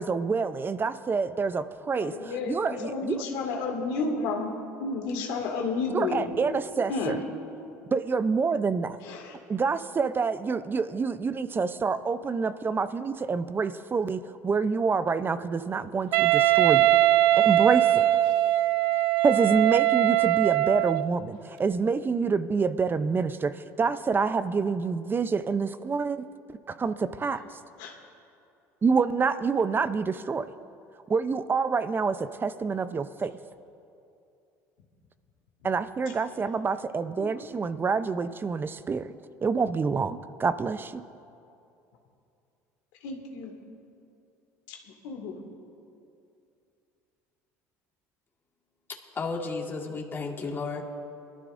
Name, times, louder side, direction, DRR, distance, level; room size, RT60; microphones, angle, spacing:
voice 1, 0.0-3.2 5.9-7.2 7.9-9.0 9.5-16.9 17.4-18.1 19.2-27.4 28.8-30.5 31.1-33.3 35.6-39.1 39.4-41.0, right 5 dB, 25° right, 13 dB, 0.6 m, -27 dB
voice 2, 1.9-4.5 4.8-6.2 6.9-7.2 9.0-9.4 27.8-27.9 37.2-37.3 43.0-43.5 44.7-45.4, left 4 dB, 75° left, 1 dB, 2.0 m, -31 dB
Wind instrument woodwind instrument, 16.1-21.1, right 15 dB, 70° right, 0.4 m, -21 dB
voice 3, 49.2-50.8, left 4 dB, 30° left, -1 dB, 1.9 m, -33 dB
22.0 x 13.0 x 2.6 m, 2.6 s
hypercardioid pair, 80°, 8 cm